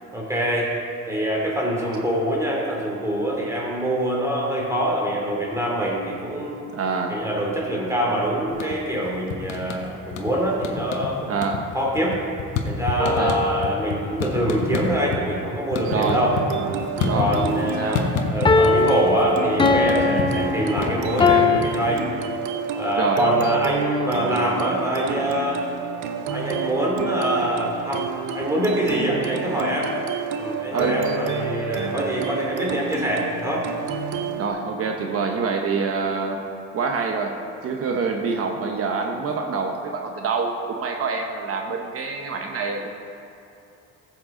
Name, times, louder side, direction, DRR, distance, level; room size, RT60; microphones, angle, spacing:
voice 1, 0.1-0.7 1.1-6.6 7.1-11.4 11.7-12.2 12.6-16.4 17.1-22.1 22.7-25.6 26.3-29.9 30.4-33.6 36.1-36.2, right 1 dB, 10° right, -3 dB, 2.8 m, -24 dB
voice 2, 6.7-7.2 11.3-11.6 13.0-13.3 15.9-16.2 17.0-18.0 20.1-20.3 23.0-23.2 30.7-31.0 34.4-36.5 36.7-37.4 37.6-42.9, right 4 dB, 50° right, 3 dB, 1.0 m, -26 dB
sound 1, 8.5-9.0 9.3-10.3 10.6-11.1 11.4-15.2 15.5-17.6 18.0-18.8 19.1-22.0, left 6 dB, 70° left, 1.2 m, -28 dB
sound 2, 13.0-14.0 18.4-21.6, left 4 dB, 15° left, 0.6 m, -21 dB
sound 3, 15.8-34.5, right 5 dB, 80° right, 0.9 m, -29 dB
15.5 x 7.9 x 3.8 m, 2.9 s
cardioid pair, 120°, 29 cm